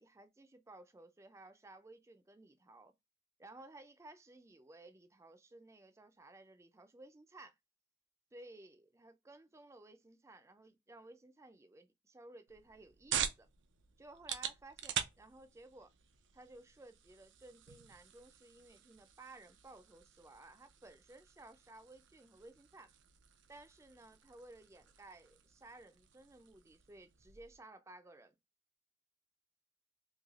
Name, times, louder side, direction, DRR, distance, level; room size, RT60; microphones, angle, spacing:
voice 1, 0.0-2.9 3.4-7.6 8.3-13.5 14.0-15.9 16.3-22.9 23.5-28.4, right 2 dB, 15° right, 0.4 m, -57 dB
sound 1, 12.5-27.6, right 8 dB, 80° right, 0.5 m, -46 dB
3.2 x 2.6 x 2.4 m
head